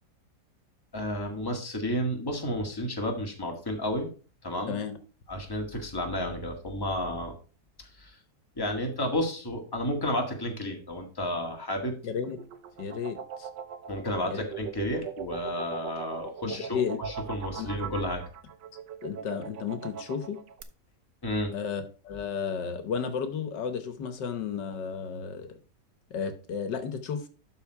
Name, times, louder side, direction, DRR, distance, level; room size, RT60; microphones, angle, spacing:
voice 1, 0.9-4.1 4.4-4.8 5.3-7.3 8.0-8.2 8.6-12.0 13.9-16.7 17.0-18.2 21.2-21.5, left 1 dB, 15° left, 2 dB, 1.7 m, -31 dB
voice 2, 4.7-5.0 12.0-12.4 12.8-13.5 14.3-14.4 16.4-17.0 17.6-17.7 19.0-20.4 21.5-25.6 26.1-27.3, left 6 dB, 80° left, 9 dB, 1.6 m, -33 dB
sound 1, 12.1-20.6, right 8 dB, 85° right, 1.6 m, -40 dB
12.0 x 4.3 x 4.6 m, 0.37 s
omnidirectional pair, 1.9 m